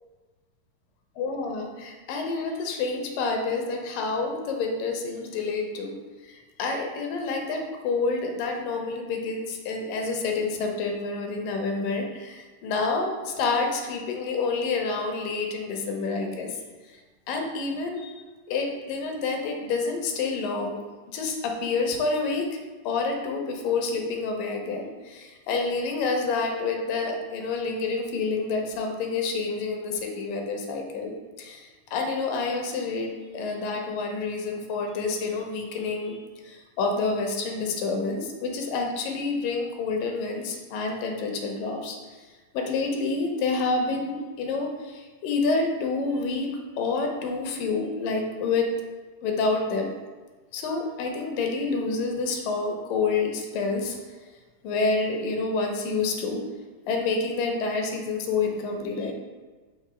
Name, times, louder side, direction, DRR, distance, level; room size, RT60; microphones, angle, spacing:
voice 1, 1.2-5.9 6.2-16.5 17.3-18.2 18.5-20.8 21.1-22.5 22.9-31.1 31.4-36.2 36.4-42.0 42.5-46.5 46.8-48.7 49.2-49.9 50.5-54.0 54.6-56.4 56.9-59.1, left 4 dB, 80° left, 2 dB, 2.4 m, -28 dB
5.6 x 3.4 x 4.9 m, 1.3 s
omnidirectional pair, 3.9 m